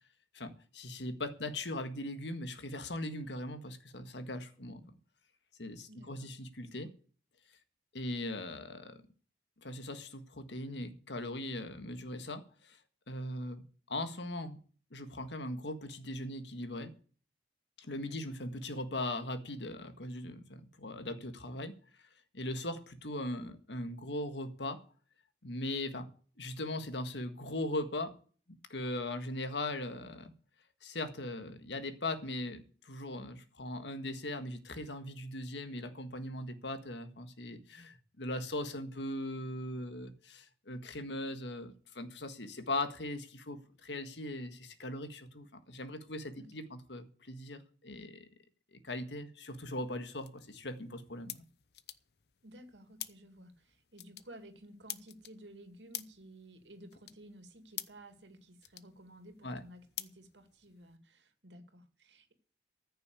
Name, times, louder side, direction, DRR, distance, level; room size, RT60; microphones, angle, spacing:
voice 1, 0.3-4.8 5.6-6.9 7.9-9.0 9.6-12.8 13.1-14.6 14.9-16.9 17.8-21.7 22.3-24.8 25.4-26.1 26.4-28.1 28.7-30.3 30.8-48.3 48.7-51.5 59.4-59.6, left 1 dB, 85° left, 9 dB, 1.7 m, -39 dB
voice 2, 5.8-6.3 18.1-18.2 46.3-46.5 52.4-62.3, right 1 dB, 90° right, 7 dB, 2.5 m, -54 dB
sound 1, 49.5-61.0, left 14 dB, 65° left, 0.8 m, -50 dB
14.5 x 6.8 x 8.4 m, 0.42 s
head